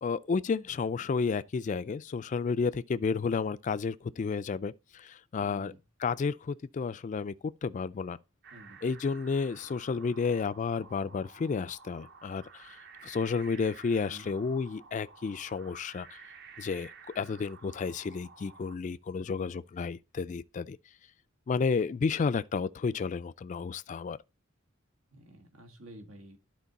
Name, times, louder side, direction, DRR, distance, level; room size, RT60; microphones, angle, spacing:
voice 1, 0.0-5.7 6.0-7.3 7.6-8.2 8.8-12.8 13.0-16.2 16.6-16.9 17.2-20.8 21.5-24.2, left 5 dB, 35° left, 0.3 m, -31 dB
voice 2, 5.4-5.8 8.5-8.8 14.1-14.3 19.3-19.6 25.1-26.4, equal, 90° right, 1.9 m, -51 dB
sound 1, 8.4-18.8, right 5 dB, 55° right, 0.9 m, -52 dB
11.5 x 4.4 x 4.1 m
head